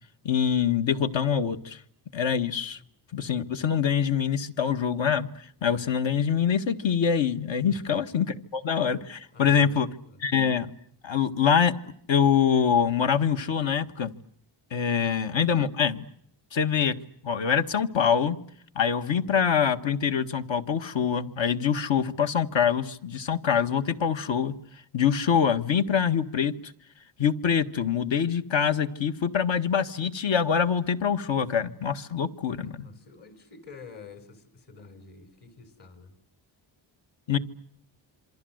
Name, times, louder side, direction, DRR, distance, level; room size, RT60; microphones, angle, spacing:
voice 1, 0.3-1.8 2.1-2.8 3.1-9.9 10.2-10.7 11.0-11.7 12.1-14.1 14.7-16.0 16.5-17.0 17.2-18.4 18.8-24.5 24.9-26.5 27.2-32.9 37.3-37.4, left 7 dB, 70° left, 8 dB, 1.8 m, -25 dB
voice 2, 9.3-10.5 32.6-36.2, left 4 dB, 55° left, 9 dB, 6.2 m, -48 dB
27.5 x 24.0 x 8.0 m, 0.69 s
wide cardioid pair, 110°, 47 cm